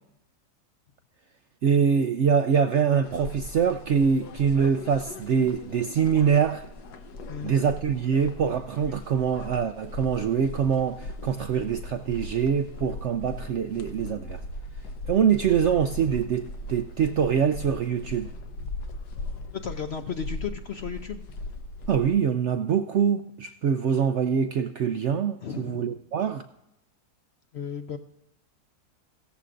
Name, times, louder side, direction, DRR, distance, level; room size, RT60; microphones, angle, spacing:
voice 1, 1.6-6.7 7.4-14.4 15.1-18.3 21.9-26.4, right 7 dB, 70° right, 0.7 m, -24 dB
sound 1, 3.0-22.1, left 2 dB, 80° left, 1.5 m, -39 dB
voice 2, 7.3-7.7 19.5-21.2 25.4-26.0 27.5-28.0, left 6 dB, 60° left, 0.7 m, -34 dB
16.5 x 14.0 x 2.5 m
omnidirectional pair, 1.7 m